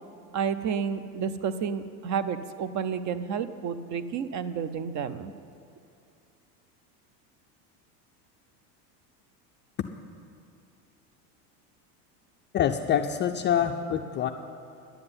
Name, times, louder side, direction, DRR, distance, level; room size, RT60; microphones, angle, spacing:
voice 1, 0.3-5.3, right 7 dB, 40° right, 13 dB, 0.7 m, -30 dB
voice 2, 12.5-14.3, left 9 dB, 25° left, 4 dB, 0.3 m, -25 dB
11.0 x 7.7 x 9.7 m, 2.6 s
supercardioid pair, 120°, 46 cm